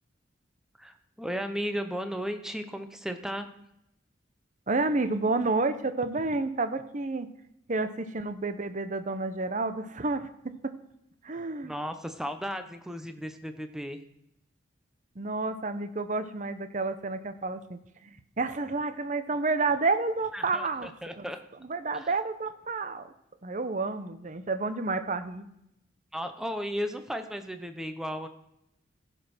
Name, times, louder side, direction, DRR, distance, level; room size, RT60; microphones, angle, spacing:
voice 1, 0.8-3.5 11.6-14.0 20.3-21.4 21.9-22.1 26.1-28.3, equal, 5° right, 8 dB, 0.8 m, -35 dB
voice 2, 4.7-7.3 7.7-10.7 11.2-11.7 15.2-17.8 18.0-20.9 21.2-21.3 21.7-23.1 23.4-25.5, right 3 dB, 40° right, 10 dB, 0.8 m, -30 dB
15.5 x 5.4 x 6.1 m, 0.79 s
head